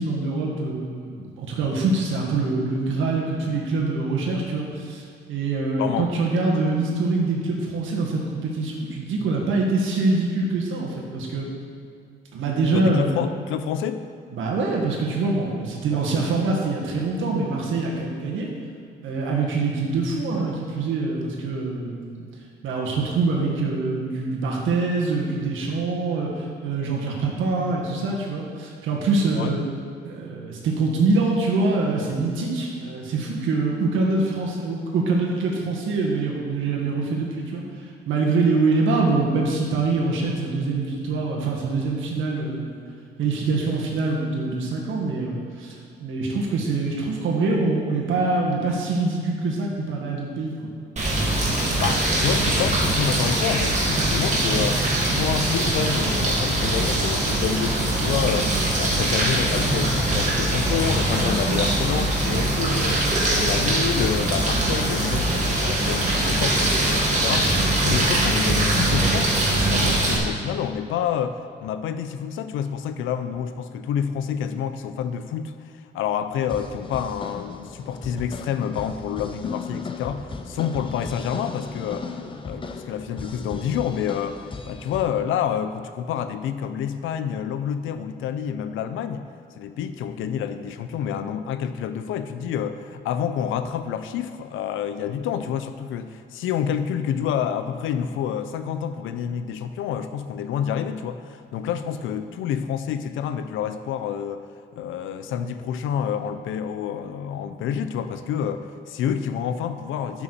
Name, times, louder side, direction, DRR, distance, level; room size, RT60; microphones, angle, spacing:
voice 1, 0.0-5.0 5.3-11.5 12.3-13.1 14.3-18.5 19.0-22.2 22.6-29.6 30.0-42.8 43.2-50.6, right 3 dB, 80° right, -1 dB, 1.7 m, -24 dB
voice 2, 5.8-6.1 12.7-14.0 15.9-16.1 29.3-29.5 51.8-54.8 55.1-63.1 63.3-75.5 75.9-82.1 82.4-89.3 89.6-104.5 104.8-110.2, left 8 dB, 85° left, 10 dB, 0.6 m, -28 dB
sound 1, 51.0-70.2, right 1 dB, 35° right, 2.1 m, -22 dB
sound 2, 76.4-85.1, left 4 dB, 25° left, 0.7 m, -36 dB
11.0 x 5.9 x 4.2 m, 2.4 s
cardioid pair, 90°, 20 cm